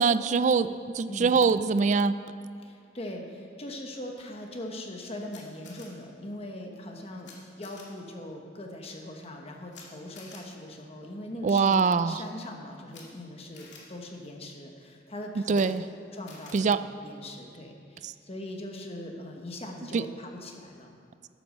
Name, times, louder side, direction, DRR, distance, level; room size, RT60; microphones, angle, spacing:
voice 1, 0.0-2.1 11.4-12.2 15.5-15.8 16.5-16.8 18.0-18.1 19.9-20.0, right 5 dB, 40° right, 13 dB, 0.3 m, -23 dB
voice 2, 1.1-1.4 2.6-7.3 7.6-15.7 16.1-20.9, left 1 dB, 35° left, 2 dB, 1.2 m, -41 dB
Camera, 5.3-5.9 7.2-7.3 7.6-7.8 9.7-9.8 10.1-10.4 12.9-13.0 13.5-13.8 15.5-15.6 16.3-16.5, left 5 dB, 70° left, 2.4 m, -49 dB
11.5 x 8.5 x 6.4 m, 2.4 s
head